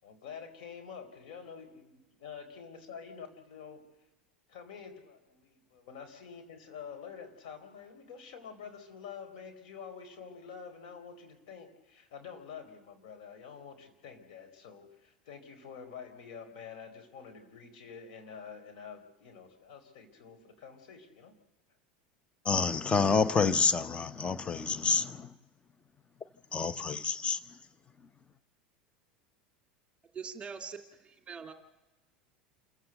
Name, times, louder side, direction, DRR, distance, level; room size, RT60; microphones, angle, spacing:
voice 1, 0.0-3.8 4.5-21.3, left 6 dB, 60° left, 4.6 m, -48 dB
voice 2, 22.5-25.3 26.5-27.4, left 5 dB, 20° left, 1.0 m, -28 dB
voice 3, 30.1-31.5, right 6 dB, 20° right, 2.3 m, -43 dB
28.0 x 15.0 x 7.9 m
figure-of-eight pair, 75°, 5 cm